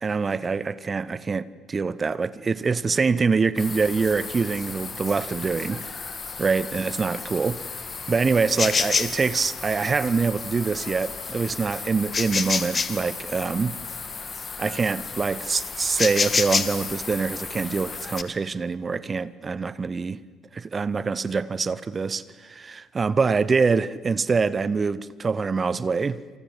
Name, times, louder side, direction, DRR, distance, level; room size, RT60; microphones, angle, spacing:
voice 1, 0.0-5.9 6.4-7.8 8.1-13.8 14.6-20.2 20.5-26.2, right 4 dB, 30° right, 1.1 m, -25 dB
sound 1, 3.6-18.2, left 5 dB, 30° left, 2.1 m, -31 dB
28.0 x 28.0 x 7.6 m
figure-of-eight pair, 55°, 0 cm